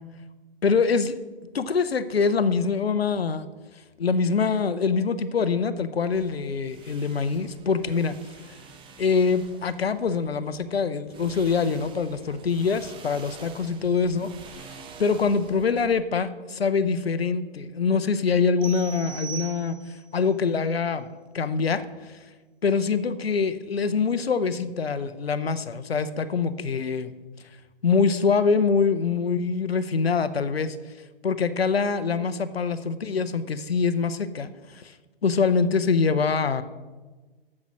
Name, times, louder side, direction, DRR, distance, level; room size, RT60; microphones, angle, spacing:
voice 1, 0.6-1.1 1.5-3.5 4.0-8.1 9.0-14.3 15.0-19.8 20.1-21.1 21.3-22.1 22.6-27.1 27.8-30.8 31.2-34.9 35.2-36.6, left 5 dB, 80° left, 13 dB, 0.8 m, -24 dB
sound 1, 6.1-10.8 11.1-16.0, right 5 dB, 15° right, 0.8 m, -47 dB
sound 2, 18.6-20.1, right 8 dB, 70° right, 1.0 m, -39 dB
8.8 x 7.5 x 6.1 m, 1.3 s
figure-of-eight pair, 115°, 30 cm